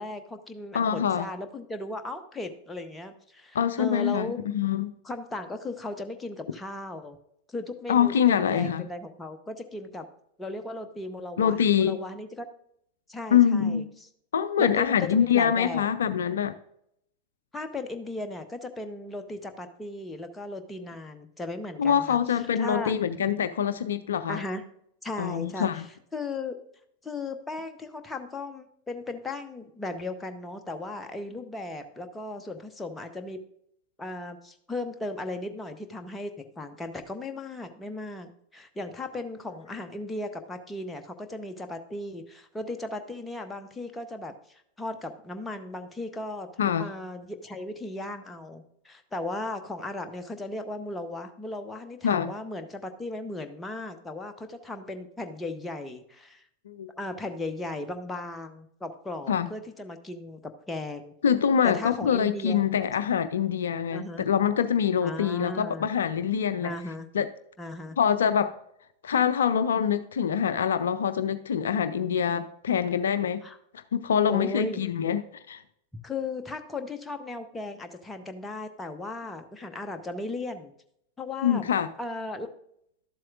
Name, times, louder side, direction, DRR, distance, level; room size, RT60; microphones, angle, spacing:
voice 1, 0.0-4.4 5.0-7.2 7.5-10.0 10.4-12.4 13.1-13.8 14.6-15.9 17.5-22.2 22.6-22.9 24.3-24.6 25.0-26.6 27.0-33.4 34.0-56.4 57.0-61.1 61.6-62.6 63.9-64.3 65.0-65.9 66.6-67.1 67.6-68.0 73.4-73.6 74.3-74.8 76.0-80.7 81.2-81.7 82.0-82.5, left 2 dB, 10° left, 6 dB, 0.8 m, -36 dB
voice 2, 0.7-1.3 3.5-4.3 4.5-4.9 7.9-8.9 11.4-12.0 13.3-13.9 14.3-16.6 21.8-24.4 25.2-25.9 46.6-46.9 52.0-52.3 56.7-56.9 59.3-59.5 61.2-66.7 67.1-67.3 68.0-68.6 69.0-73.4 73.7-75.6 81.4-81.9, left 8 dB, 65° left, 12 dB, 0.4 m, -25 dB
12.5 x 7.5 x 2.4 m, 0.73 s
figure-of-eight pair, 90°, 0 cm